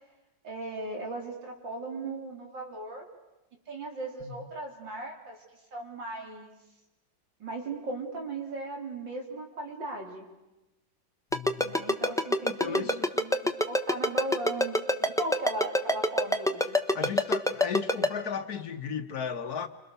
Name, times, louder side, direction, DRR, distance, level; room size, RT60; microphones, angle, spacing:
voice 1, 0.4-3.0 3.7-5.4 5.7-6.5 7.4-10.3 11.6-16.8, right 2 dB, 75° right, 1 dB, 4.5 m, -37 dB
voice 2, 11.3-11.8 12.4-13.1 16.9-19.7, left 7 dB, 60° left, 9 dB, 1.5 m, -35 dB
Ringtone, 11.3-18.1, left 1 dB, 5° left, 0.7 m, -24 dB
28.5 x 26.5 x 6.8 m, 1.0 s
omnidirectional pair, 2.0 m